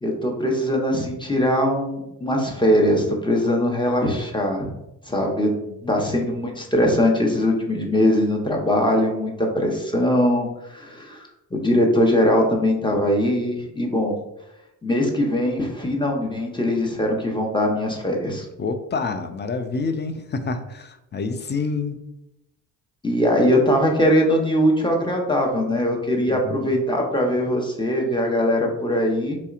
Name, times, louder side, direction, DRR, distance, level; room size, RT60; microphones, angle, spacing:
voice 1, 0.0-4.7 5.1-5.5 5.9-11.2 11.5-14.1 14.8-18.5 23.0-29.4, left 1 dB, 10° left, 0 dB, 0.9 m, -21 dB
voice 2, 18.6-22.0 26.3-26.8, left 4 dB, 25° left, 8 dB, 0.4 m, -28 dB
4.3 x 2.7 x 2.4 m, 0.88 s
supercardioid pair, 55°, 41 cm